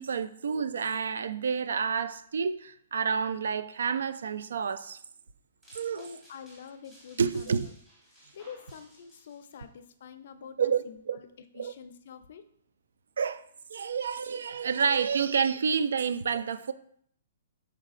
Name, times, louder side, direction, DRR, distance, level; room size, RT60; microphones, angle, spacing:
voice 1, 0.0-5.0 5.7-6.0 7.2-7.7 10.6-11.2 11.5-11.7 13.2-13.4 13.7-16.7, right 6 dB, 80° right, 0.3 m, -29 dB
sound 1, 5.6-9.6, right 1 dB, 5° right, 1.4 m, -57 dB
voice 2, 5.9-7.7 8.1-11.3 11.5-12.4, left 7 dB, 55° left, 0.4 m, -47 dB
4.8 x 4.5 x 2.5 m
hypercardioid pair, 165°, 0 cm